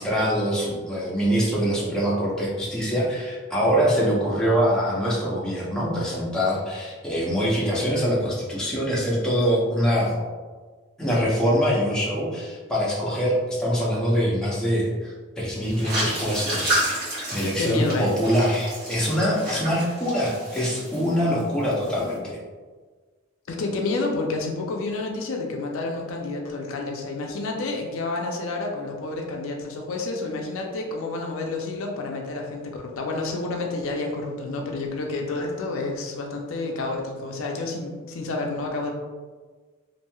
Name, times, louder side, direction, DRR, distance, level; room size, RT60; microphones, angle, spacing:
voice 1, 0.0-10.1 11.0-22.4, equal, 5° left, -7 dB, 0.5 m, -24 dB
sound 1, 15.7-21.4 21.7-22.1, right 1 dB, 50° right, 1.3 m, -30 dB
voice 2, 17.6-18.2 23.5-38.9, left 2 dB, 70° left, 1 dB, 0.4 m, -29 dB
3.0 x 2.6 x 2.2 m, 1.4 s
head